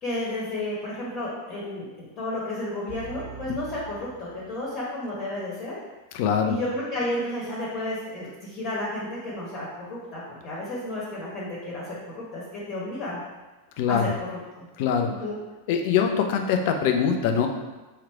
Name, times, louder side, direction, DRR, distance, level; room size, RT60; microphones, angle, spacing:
voice 1, 0.0-5.8 6.5-13.2 13.9-14.3 14.6-14.7 15.1-15.4, left 1 dB, 30° left, -6 dB, 1.2 m, -32 dB
sound 1, 2.9-5.1 5.4-5.5, right 5 dB, 85° left, 0.8 m, -43 dB
voice 2, 6.1-6.6 13.8-14.1 14.8-15.1 15.7-17.5, left 7 dB, 50° left, 5 dB, 0.5 m, -23 dB
3.7 x 3.1 x 4.5 m, 1.1 s
figure-of-eight pair, 90°, 0 cm